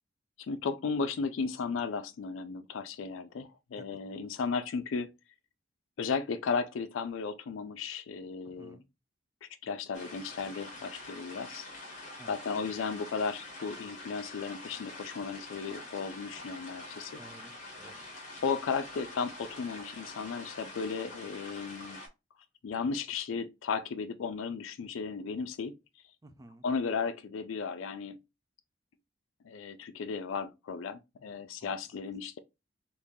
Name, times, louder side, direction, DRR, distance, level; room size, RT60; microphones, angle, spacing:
voice 1, 0.4-5.1 6.0-8.8 9.4-11.7 12.3-17.1 18.4-22.0 22.6-25.8 26.6-28.2 29.4-32.4, left 5 dB, 80° left, 0.4 m, -35 dB
voice 2, 3.8-4.2 8.4-8.8 12.2-12.4 17.2-18.0 26.2-26.6 31.6-31.7, right 2 dB, 20° right, 0.4 m, -54 dB
sound 1, 9.9-22.1, left 2 dB, 40° left, 1.1 m, -46 dB
3.6 x 3.0 x 2.6 m
head